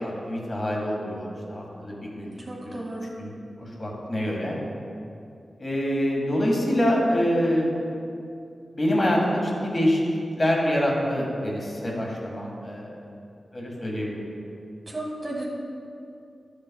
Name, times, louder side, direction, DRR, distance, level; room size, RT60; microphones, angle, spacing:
voice 1, 0.0-2.8 3.2-4.6 5.6-7.7 8.7-13.1 13.5-14.2, equal, 35° left, -2 dB, 1.6 m, -26 dB
voice 2, 2.5-3.1 14.9-15.4, right 1 dB, 25° right, -4 dB, 1.2 m, -33 dB
12.0 x 6.4 x 2.3 m, 2.6 s
wide cardioid pair, 110°, 0 cm